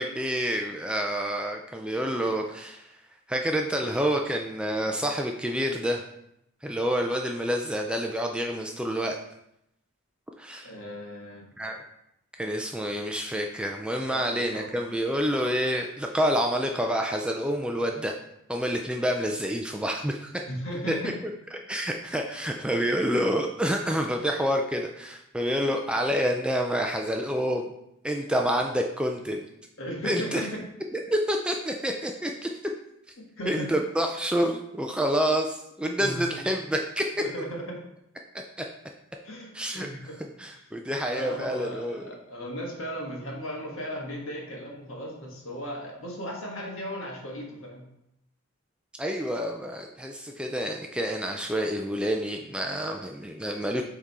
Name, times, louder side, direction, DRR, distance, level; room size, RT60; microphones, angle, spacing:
voice 1, 0.0-2.9 3.3-6.0 6.6-9.2 10.4-10.7 11.6-11.8 12.4-18.2 18.5-20.3 20.9-21.1 21.7-27.7 28.0-29.5 30.0-30.5 30.9-32.5 33.5-37.1 38.6-38.7 39.5-39.9 40.4-42.1 49.0-53.8, equal, 5° right, 2 dB, 0.3 m, -28 dB
voice 2, 10.6-11.5 14.1-14.6 20.5-21.1 29.8-30.6 33.4-33.7 36.0-36.2 37.2-37.8 39.2-40.2 40.5-40.6 41.0-47.8, equal, 65° left, -1 dB, 1.7 m, -36 dB
8.1 x 3.7 x 4.2 m, 0.81 s
head